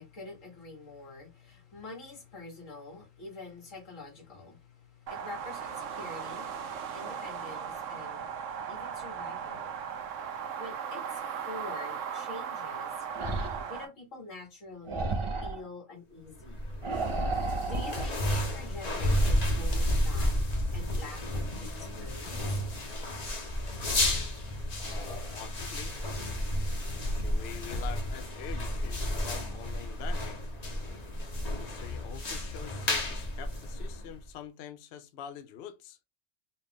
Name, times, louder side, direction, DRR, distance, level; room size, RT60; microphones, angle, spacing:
voice 1, 0.0-8.4 8.7-9.7 10.6-11.1 11.5-12.9 13.7-15.1 15.4-16.7 17.6-20.3 20.7-22.6, left 2 dB, 90° left, 2.1 m, -46 dB
sound 1, 5.1-13.9, right 7 dB, 75° right, 1.0 m, -37 dB
sound 2, 13.1-13.7 14.9-15.6 16.8-18.1, right 2 dB, 35° right, 0.6 m, -32 dB
sound 3, 16.4-34.2, left 1 dB, 35° left, 0.9 m, -32 dB
voice 2, 25.3-25.9 27.0-30.4 31.4-36.0, left 9 dB, 65° left, 0.7 m, -45 dB
4.2 x 2.4 x 3.5 m
omnidirectional pair, 1.3 m